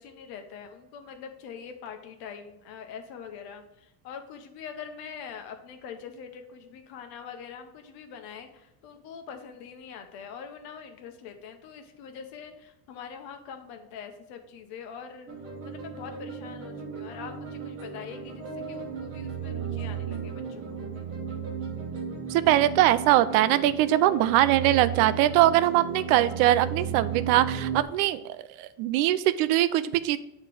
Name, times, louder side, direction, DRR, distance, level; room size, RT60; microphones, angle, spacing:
voice 1, 0.0-15.3 15.6-20.9, left 7 dB, 55° left, 6 dB, 1.0 m, -43 dB
sound 1, 15.3-27.8, right 7 dB, 30° right, 1.4 m, -35 dB
voice 2, 22.3-28.2 28.6-30.2, right 14 dB, 65° right, 14 dB, 0.5 m, -22 dB
8.1 x 3.2 x 4.7 m, 0.90 s
cardioid pair, 165°, 45 cm